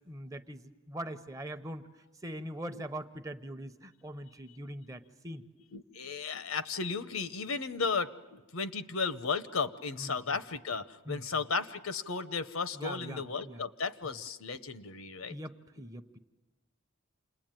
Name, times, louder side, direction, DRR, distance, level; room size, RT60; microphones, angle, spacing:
voice 1, 0.0-1.8 2.2-5.4 10.0-10.2 11.1-11.2 12.7-13.6 15.3-16.2, right 1 dB, 15° right, 9 dB, 0.8 m, -42 dB
voice 2, 5.7-15.4 15.8-15.9, left 4 dB, 75° left, 13 dB, 0.9 m, -35 dB
28.0 x 20.5 x 9.1 m, 1.2 s
head